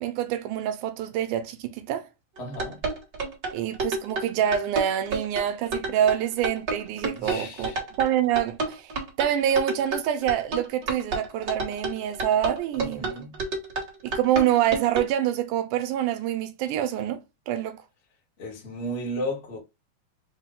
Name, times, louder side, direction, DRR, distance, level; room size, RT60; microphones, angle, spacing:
voice 1, 0.0-2.1 3.5-13.1 14.0-17.8, right 10 dB, 80° right, 2.1 m, -26 dB
voice 2, 2.4-2.8 7.1-7.8 12.7-13.4 18.4-19.6, equal, 70° left, 0.6 m, -34 dB
sound 1, 2.4-15.1, right 3 dB, 45° right, 1.2 m, -30 dB
4.9 x 2.2 x 3.6 m
omnidirectional pair, 3.6 m